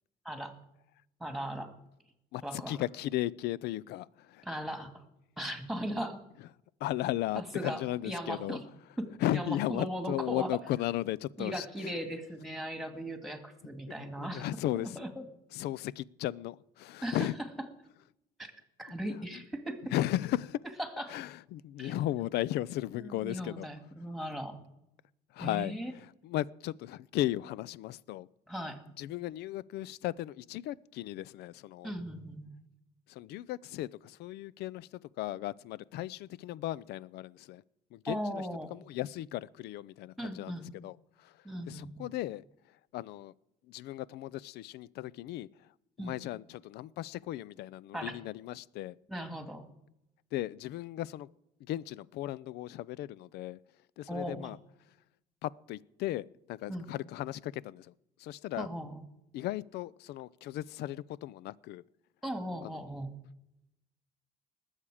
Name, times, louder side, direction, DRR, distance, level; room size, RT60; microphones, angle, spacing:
voice 1, 0.2-0.6 1.2-1.8 2.4-2.8 4.4-5.0 5.4-6.2 7.4-8.6 9.0-10.5 11.4-14.5 14.7-15.2 17.0-17.3 18.4-18.5 18.8-19.9 20.8-21.2 21.8-21.9 23.0-24.6 25.4-25.9 28.5-28.8 31.8-32.5 38.1-38.7 40.2-40.7 41.4-42.1 46.0-46.2 47.9-48.1 49.1-49.7 54.1-54.5 56.7-56.9 58.5-59.0 62.2-63.1, equal, ahead, 2.1 m, -38 dB
voice 2, 2.3-4.4 6.8-8.6 9.2-11.9 14.0-15.0 15.5-17.3 19.3-19.4 19.9-20.6 21.1-23.7 25.3-28.3 29.0-32.0 33.1-37.6 37.9-38.4 38.7-40.6 40.8-41.3 41.7-42.4 42.9-43.3 43.7-45.5 46.0-49.0 50.3-51.3 51.7-53.6 54.0-54.6 55.4-57.9 58.2-58.7 59.3-61.8 62.6-62.8, left 14 dB, 75° left, 0.4 m, -36 dB
20.5 x 7.4 x 4.9 m
cardioid pair, 110°, 17 cm